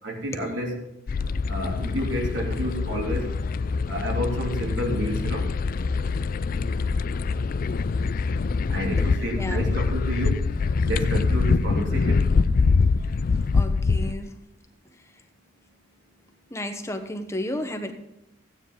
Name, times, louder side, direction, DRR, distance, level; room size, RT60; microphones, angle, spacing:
voice 1, 0.0-0.7 1.5-3.3 3.9-5.5 8.7-10.4 10.8-12.3, equal, 80° right, -1 dB, 3.2 m, -30 dB
sound 1, 1.1-14.1, left 4 dB, 50° left, 0.4 m, -24 dB
voice 2, 9.0-9.6 13.5-14.3 16.5-17.9, left 1 dB, 15° left, 6 dB, 1.0 m, -32 dB
15.0 x 9.6 x 3.8 m, 0.87 s
head